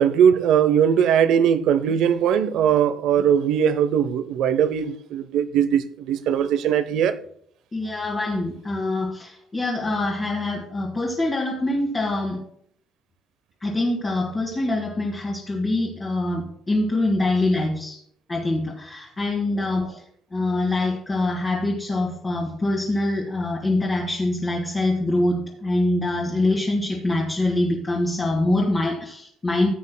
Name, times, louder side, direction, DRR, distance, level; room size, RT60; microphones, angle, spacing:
voice 1, 0.0-7.2, right 8 dB, 70° right, 0.6 m, -20 dB
voice 2, 7.7-12.4 13.6-18.0 18.3-20.0 20.3-29.7, left 2 dB, 25° left, 1.8 m, -24 dB
15.0 x 8.5 x 2.2 m
cardioid pair, 125°, 0 cm